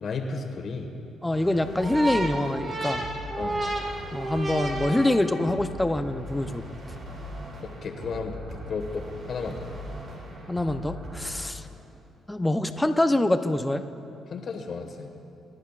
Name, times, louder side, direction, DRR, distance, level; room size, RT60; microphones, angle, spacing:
voice 1, 0.0-0.9 3.4-3.6 7.6-9.7 14.3-15.1, left 4 dB, 55° left, 4 dB, 1.5 m, -33 dB
voice 2, 1.2-3.0 4.1-6.6 10.5-11.6 12.3-13.8, left 1 dB, 10° left, 8 dB, 0.6 m, -25 dB
sound 1, 1.3-11.5, equal, 60° right, 2.6 m, -40 dB
sound 2, 1.8-5.7, right 1 dB, 40° right, 1.9 m, -31 dB
27.0 x 11.5 x 2.4 m, 2.8 s
cardioid pair, 90°, 0 cm